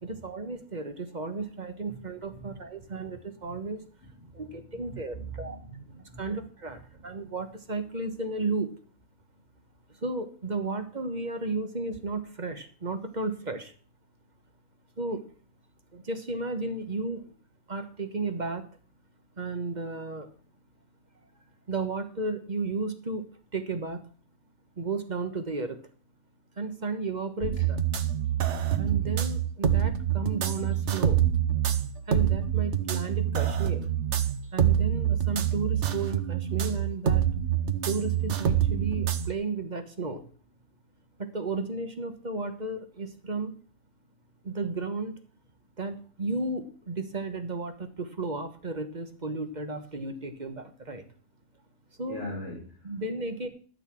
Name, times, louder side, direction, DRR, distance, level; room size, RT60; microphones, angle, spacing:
voice 1, 0.0-3.9 4.3-5.6 6.1-8.7 9.9-13.7 15.0-15.3 15.9-17.3 17.7-18.7 19.4-20.3 21.7-23.2 23.5-24.0 24.8-25.8 26.6-27.8 28.8-31.2 32.1-33.9 34.5-37.3 37.8-40.2 41.2-43.5 44.4-45.2 45.8-51.0 52.0-52.2 52.8-53.5, right 3 dB, 35° right, 7 dB, 1.3 m, -33 dB
voice 2, 4.3-6.2 52.1-52.7, right 1 dB, 50° left, -2 dB, 3.0 m, -41 dB
sound 1, 27.4-39.3, right 10 dB, 65° right, 1.2 m, -26 dB
12.5 x 6.7 x 6.2 m, 0.42 s
omnidirectional pair, 1.3 m